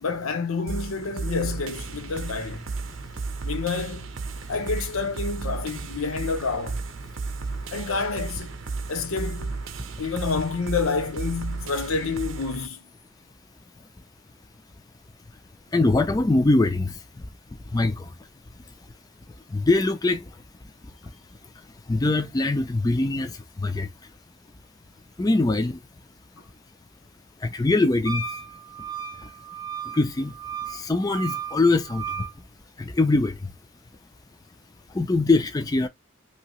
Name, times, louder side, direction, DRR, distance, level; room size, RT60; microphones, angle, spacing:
voice 1, 0.0-2.6 3.4-4.1 4.5-6.8 7.7-8.6 8.9-9.6 10.0-12.8, left 4 dB, 85° left, 0.7 m, -28 dB
sound 1, 0.7-12.7, right 4 dB, 70° right, 0.6 m, -34 dB
voice 2, 15.7-16.9 17.7-18.1 19.5-20.2 21.9-23.3 23.6-23.9 25.2-25.8 27.4-28.2 29.9-30.3 30.7-32.0 32.8-33.4 34.9-35.9, left 2 dB, 20° left, 0.3 m, -22 dB
Wind instrument woodwind instrument, 28.1-32.3, right 6 dB, 20° right, 0.7 m, -35 dB
2.8 x 2.7 x 3.0 m
head